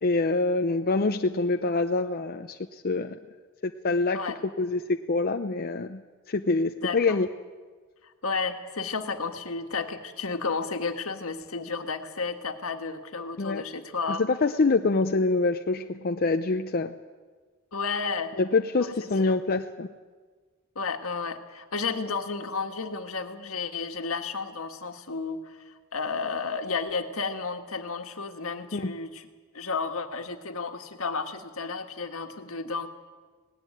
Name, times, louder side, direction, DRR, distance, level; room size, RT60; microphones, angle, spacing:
voice 1, 0.0-3.2 3.6-4.2 4.6-6.0 6.3-7.3 13.4-13.6 14.1-16.9 18.4-19.9 28.7-28.9, left 3 dB, 45° left, 6 dB, 0.6 m, -25 dB
voice 2, 6.8-7.2 8.2-14.2 17.7-18.4 18.8-19.3 20.7-29.3 29.5-32.9, left 4 dB, 70° left, 6 dB, 1.7 m, -32 dB
18.5 x 18.0 x 9.3 m, 1.4 s
head